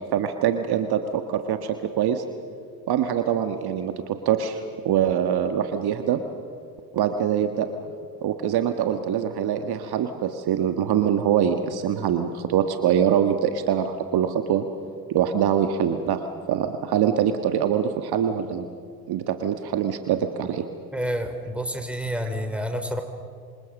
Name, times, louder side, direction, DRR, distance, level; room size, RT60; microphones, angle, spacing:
voice 1, 0.1-2.2 2.9-6.2 6.9-7.7 8.2-14.7 15.1-18.7 19.1-20.6, right 9 dB, 50° right, 7 dB, 1.6 m, -24 dB
voice 2, 20.9-23.0, equal, ahead, 6 dB, 4.3 m, -29 dB
26.5 x 26.0 x 6.6 m, 2.2 s
hypercardioid pair, 60°, 48 cm